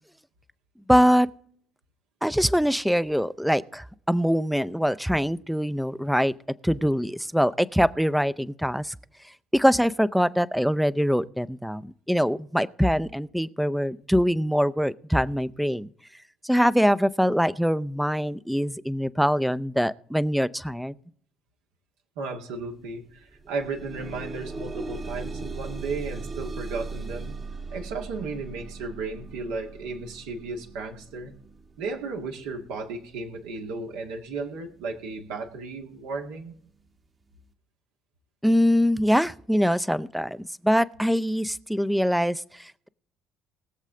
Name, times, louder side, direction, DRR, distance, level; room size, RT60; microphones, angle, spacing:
voice 1, 0.9-1.3 2.2-6.3 6.6-8.9 9.5-15.9 16.4-20.9 38.4-42.9, equal, ahead, 15 dB, 0.6 m, -23 dB
voice 2, 22.2-27.3 27.7-31.3 31.8-36.6, right 3 dB, 70° right, 2 dB, 1.8 m, -34 dB
sound 1, 22.6-22.7 23.1-34.1 34.9-35.0 35.5-35.6, right 3 dB, 35° right, 1.5 m, -39 dB
20.5 x 7.4 x 3.8 m, 0.62 s
figure-of-eight pair, 50°, 0 cm